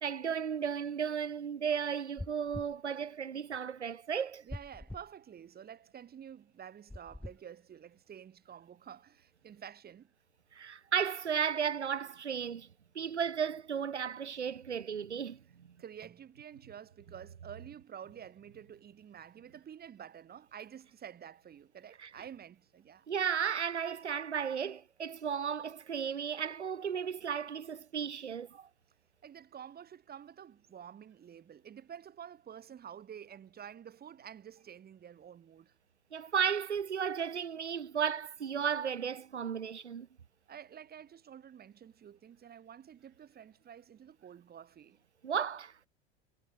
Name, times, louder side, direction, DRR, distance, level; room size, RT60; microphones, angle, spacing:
voice 1, 0.0-4.4 10.5-12.7 12.9-15.7 22.0-22.1 23.1-28.7 36.1-40.1 45.2-45.7, right 7 dB, 85° right, 0.6 m, -34 dB
sound 1, 2.2-2.8 4.5-5.1 6.9-7.4, left 1 dB, 5° left, 1.2 m, -43 dB
voice 2, 4.4-10.1 15.8-23.1 29.2-35.8 40.5-45.0, right 9 dB, 30° right, 7.7 m, -50 dB
figure-of-eight pair, 80°, 33 cm